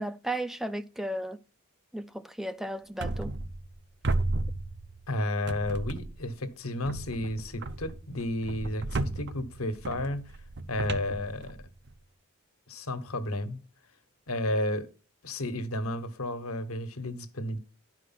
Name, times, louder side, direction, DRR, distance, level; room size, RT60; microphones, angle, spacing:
voice 1, 0.0-1.4 1.9-3.3, right 1 dB, ahead, 0.4 m, -34 dB
sound 1, 3.0-3.8 4.0-5.1 5.5-6.3 6.8-11.9, right 2 dB, 55° right, 0.7 m, -34 dB
voice 2, 5.1-10.3 10.7-11.6 12.7-13.6 14.3-14.9 15.2-17.6, left 1 dB, 85° left, 1.2 m, -32 dB
11.0 x 4.8 x 5.7 m
head